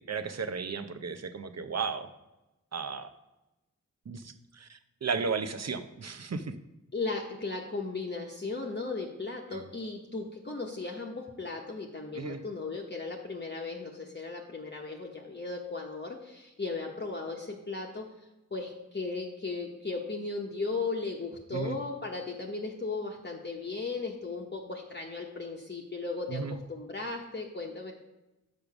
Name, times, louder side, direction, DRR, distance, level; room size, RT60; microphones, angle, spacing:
voice 1, 0.0-2.1 2.7-3.1 4.1-6.5 9.5-9.6 12.1-12.4 21.5-21.8 26.3-26.6, right 5 dB, 55° right, 9 dB, 0.8 m, -34 dB
voice 2, 6.9-18.1 18.5-27.9, left 3 dB, 35° left, -1 dB, 1.0 m, -36 dB
6.7 x 5.2 x 6.0 m, 0.97 s
wide cardioid pair, 50°, 31 cm